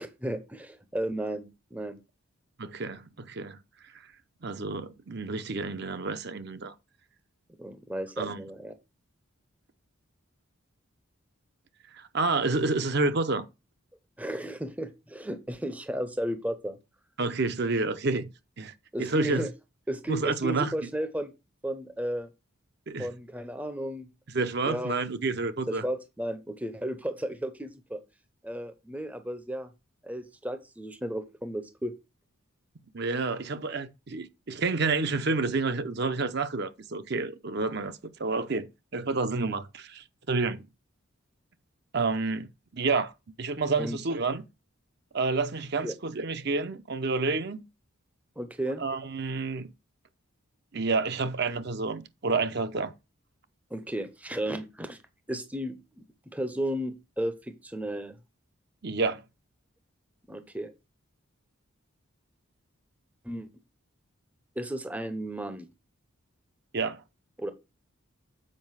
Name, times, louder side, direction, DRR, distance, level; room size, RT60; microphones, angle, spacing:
voice 1, 0.0-2.0 7.6-8.7 14.2-16.8 18.9-19.5 19.9-21.3 21.6-22.3 23.0-24.1 24.6-25.0 25.7-28.0 28.4-29.7 30.0-31.9 43.8-44.0 45.8-45.9 48.4-48.8 53.7-55.0 55.3-58.2 60.3-60.7 63.2-63.5 64.6-65.7 67.4-67.5, right 1 dB, 5° right, 0.6 m, -34 dB
voice 2, 2.6-3.6 4.4-6.7 8.2-8.4 11.9-13.4 17.2-18.3 18.6-18.7 19.0-19.5 20.1-20.7 22.9-23.1 24.3-25.8 32.9-38.7 38.9-40.6 41.9-42.5 42.7-43.1 43.4-44.4 45.1-47.6 48.8-49.7 50.7-52.9 58.8-59.2 66.7-67.0, right 3 dB, 50° right, 0.7 m, -29 dB
7.6 x 4.9 x 4.7 m
head